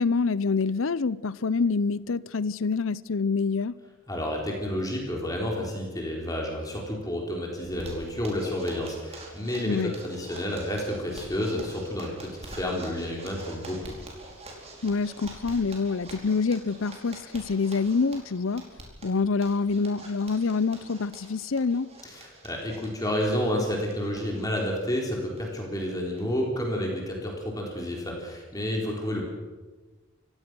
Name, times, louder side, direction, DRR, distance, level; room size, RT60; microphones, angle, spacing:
voice 1, 0.0-3.7 9.7-9.9 14.8-18.6 19.0-21.9, left 4 dB, 75° left, 0.7 m, -26 dB
voice 2, 4.1-14.0 22.0-29.2, left 1 dB, 20° left, 3.9 m, -30 dB
Zipper (clothing), 7.6-25.8 26.1-26.2 26.6-26.7 27.0-27.4, right 2 dB, 30° right, 4.6 m, -46 dB
28.5 x 16.5 x 6.2 m
head